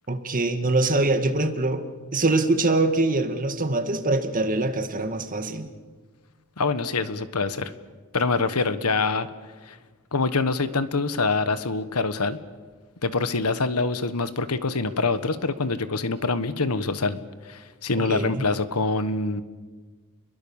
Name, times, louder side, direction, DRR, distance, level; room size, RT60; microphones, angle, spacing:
voice 1, 0.1-1.8 2.1-5.7 18.1-18.4, right 2 dB, 40° right, 7 dB, 1.9 m, -23 dB
voice 2, 6.6-7.7 8.1-9.3 9.7-9.8 10.1-12.4 13.0-17.2 17.5-19.4, left 3 dB, 80° left, 12 dB, 1.4 m, -25 dB
30.0 x 22.0 x 7.3 m, 1.4 s
head